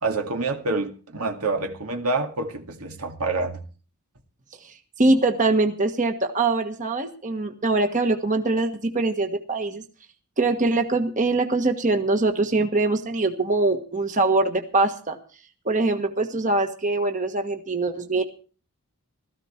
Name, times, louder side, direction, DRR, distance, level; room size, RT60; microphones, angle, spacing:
voice 1, 0.0-3.6, right 3 dB, 85° right, 2.2 m, -27 dB
voice 2, 5.0-9.8 10.4-15.2 15.6-18.2, right 2 dB, 35° right, 1.5 m, -23 dB
17.0 x 14.0 x 4.4 m
head